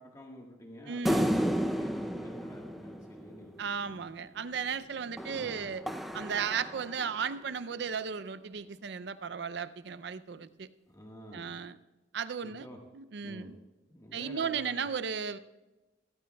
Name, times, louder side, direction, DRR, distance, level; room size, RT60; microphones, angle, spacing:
voice 1, 0.0-3.5 3.8-4.0 5.3-5.7 10.9-11.6 12.4-12.8 13.2-13.5 13.9-14.9, equal, 20° left, 0 dB, 1.4 m, -49 dB
voice 2, 0.9-1.3 3.6-5.8 6.1-10.7 11.3-11.7 12.1-12.7 12.9-13.5 14.1-15.4, right 6 dB, 65° right, 13 dB, 0.5 m, -35 dB
sound 1, 1.1-3.7 5.2-7.3, equal, ahead, 0.5 m, -33 dB
17.0 x 16.0 x 2.3 m, 1.1 s
head